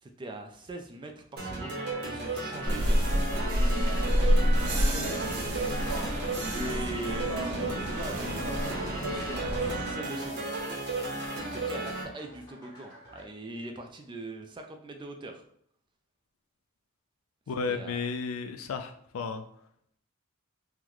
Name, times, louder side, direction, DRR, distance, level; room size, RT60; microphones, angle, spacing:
voice 1, 0.0-10.5 11.4-15.4 17.7-18.0, right 1 dB, 20° right, 4 dB, 0.3 m, -42 dB
sound 1, 1.4-12.0, right 2 dB, 50° right, 0.8 m, -34 dB
sound 2, 2.1-13.3, equal, 20° left, 1.1 m, -54 dB
sound 3, 2.6-9.9, equal, 90° right, 0.6 m, -28 dB
voice 2, 17.5-19.4, left 5 dB, 65° left, 8 dB, 0.3 m, -33 dB
3.8 x 2.1 x 3.0 m, 0.67 s
head